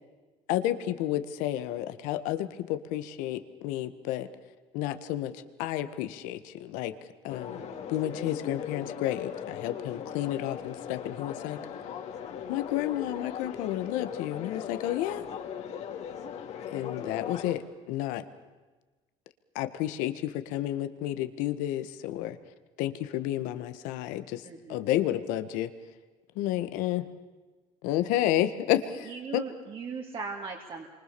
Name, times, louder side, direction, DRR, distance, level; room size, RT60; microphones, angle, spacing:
voice 1, 0.5-4.3 4.7-7.0 7.2-7.6 7.9-11.6 12.5-15.3 16.7-18.2 19.6-22.4 22.8-24.4 24.7-25.7 26.4-27.1 27.8-29.4, left 13 dB, 85° left, 10 dB, 1.7 m, -31 dB
sound 1, 7.3-17.5, left 8 dB, 55° left, 3.0 m, -39 dB
voice 2, 7.4-7.9 9.9-10.0 16.7-17.3 24.4-24.8 29.0-30.9, right 5 dB, 40° right, 1 dB, 2.9 m, -40 dB
28.0 x 25.0 x 7.1 m, 1.2 s
cardioid pair, 105°, 13 cm